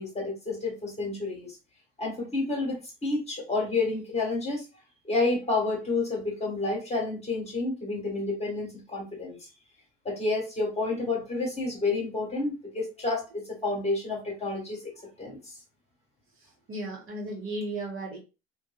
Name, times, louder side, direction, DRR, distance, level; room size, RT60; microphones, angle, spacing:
voice 1, 0.0-1.6 2.0-4.6 5.0-9.5 10.0-14.8 15.2-15.5, left 3 dB, 20° left, -2 dB, 1.4 m, -30 dB
voice 2, 16.4-18.2, right 1 dB, 40° right, -2 dB, 1.2 m, -35 dB
2.5 x 2.4 x 2.4 m, 0.29 s
hypercardioid pair, 70°, 32 cm